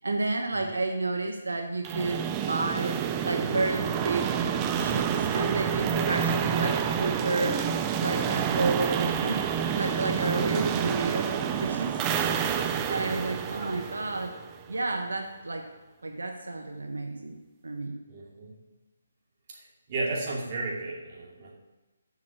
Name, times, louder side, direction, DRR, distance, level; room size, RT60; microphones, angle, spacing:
voice 1, 0.0-4.4 4.7-7.7 8.0-12.0 12.5-14.4 14.7-15.7 16.0-17.4 17.6-18.0, right 3 dB, 90° right, 4 dB, 1.0 m, -31 dB
sound 1, 1.8-14.7, right 8 dB, 20° right, 0.5 m, -28 dB
voice 2, 18.1-18.6 19.5-19.6 19.9-21.5, right 2 dB, 35° right, -4 dB, 2.6 m, -34 dB
7.4 x 6.1 x 7.6 m, 1.2 s
hypercardioid pair, 155°, 0 cm